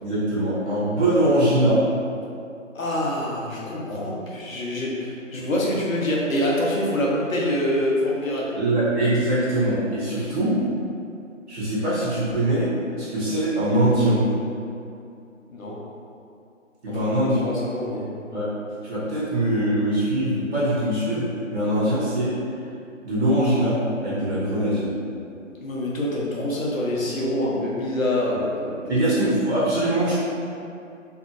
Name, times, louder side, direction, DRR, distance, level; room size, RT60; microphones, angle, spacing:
voice 1, 0.0-1.8 8.6-10.5 11.5-12.7 13.0-14.2 16.8-17.4 18.3-18.5 18.8-22.3 23.0-24.9 28.9-30.2, right 1 dB, 60° right, -10 dB, 1.0 m, -22 dB
voice 2, 2.7-8.5 15.5-15.8 16.9-17.1 17.4-18.1 25.6-29.1, left 1 dB, 85° left, -4 dB, 0.9 m, -25 dB
2.8 x 2.5 x 2.4 m, 2.5 s
figure-of-eight pair, 165°, 39 cm